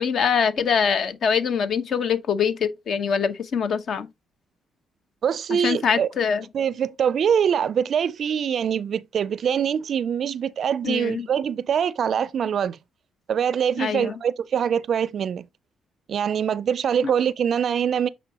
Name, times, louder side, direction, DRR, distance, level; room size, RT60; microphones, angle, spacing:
voice 1, 0.0-4.1 5.6-6.4 10.8-11.3 13.8-14.2 17.0-17.1, left 6 dB, 60° left, 1.1 m, -24 dB
voice 2, 5.2-6.1 6.5-12.8 13.3-15.4 16.1-18.1, right 8 dB, 60° right, 0.4 m, -24 dB
8.9 x 4.2 x 2.9 m
cardioid pair, 90°, 0 cm